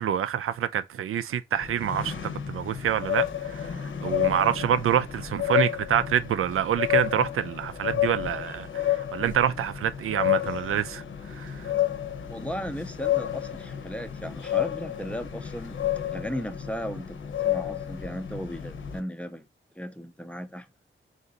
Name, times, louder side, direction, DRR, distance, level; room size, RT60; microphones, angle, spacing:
voice 1, 0.0-2.1 2.5-11.0 11.4-11.7, right 9 dB, 85° right, 0.4 m, -27 dB
sound 1, 1.6-19.0, left 11 dB, 70° left, 0.8 m, -30 dB
voice 2, 12.3-15.8 16.1-17.2 17.4-19.5 19.8-20.7, equal, 5° left, 0.4 m, -36 dB
3.9 x 2.6 x 3.9 m
wide cardioid pair, 155°, 21 cm